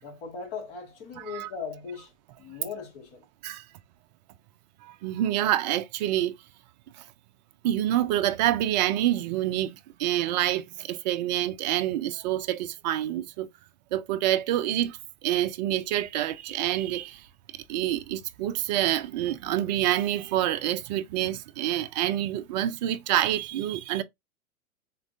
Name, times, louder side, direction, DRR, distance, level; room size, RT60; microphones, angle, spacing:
voice 1, 0.0-2.1 2.4-3.2, left 5 dB, 40° left, 1.8 m, -38 dB
voice 2, 4.8-6.4 7.0-7.1 7.6-13.5 13.9-17.3 17.5-24.0, right 13 dB, 35° right, 0.4 m, -27 dB
3.9 x 3.7 x 2.6 m
hypercardioid pair, 120°, 42 cm